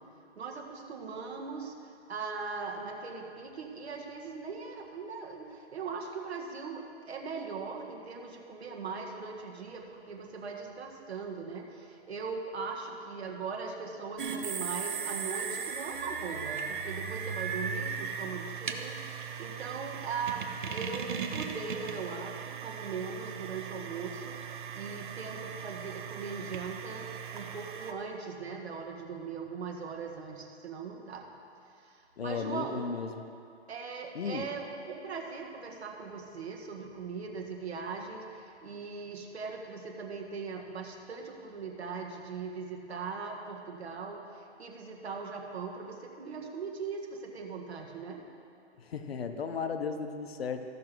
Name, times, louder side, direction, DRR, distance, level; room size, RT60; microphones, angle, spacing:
voice 1, 0.4-31.3 31.8-32.8 33.7-48.2, right 5 dB, 70° right, 1 dB, 1.7 m, -40 dB
sound 1, 14.2-27.9, right 6 dB, 45° right, 0.7 m, -38 dB
voice 2, 32.2-33.1 34.1-34.5 48.8-50.6, left 5 dB, 60° left, 7 dB, 0.8 m, -35 dB
15.0 x 6.1 x 4.6 m, 2.5 s
hypercardioid pair, 165°, 34 cm